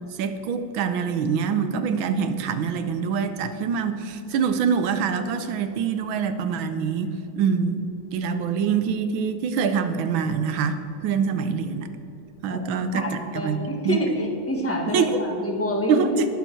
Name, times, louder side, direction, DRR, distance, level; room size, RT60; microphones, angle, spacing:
voice 1, 0.2-7.8 8.1-11.9 12.4-13.1 13.3-13.6 13.8-14.0 14.9-15.2 15.9-16.3, right 6 dB, 85° right, 9 dB, 1.6 m, -25 dB
voice 2, 12.9-16.1, equal, 10° left, 0 dB, 1.3 m, -27 dB
19.0 x 7.2 x 4.5 m, 2.8 s
omnidirectional pair, 2.1 m